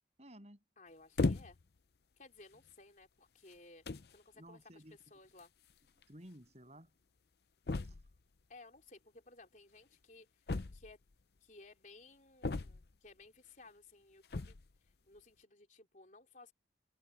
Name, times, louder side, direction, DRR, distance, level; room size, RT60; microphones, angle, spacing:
voice 1, 0.2-0.6 4.3-5.0 6.1-6.9 7.8-8.0, equal, 35° right, 8.0 m, -55 dB
voice 2, 0.8-1.6 2.2-3.8 4.1-4.8 5.1-5.5 8.5-10.3 10.7-11.0 11.4-14.6 14.8-16.5, left 3 dB, 45° left, 3.9 m, -58 dB
sound 1, 1.2-1.8 2.5-2.7 3.5-3.6 3.9-4.2 5.4-5.5 5.7-5.8 6.0-6.1 7.7-8.2 10.5-11.1 12.4-13.1 14.2-14.7, left 3 dB, 60° left, 0.7 m, -36 dB
head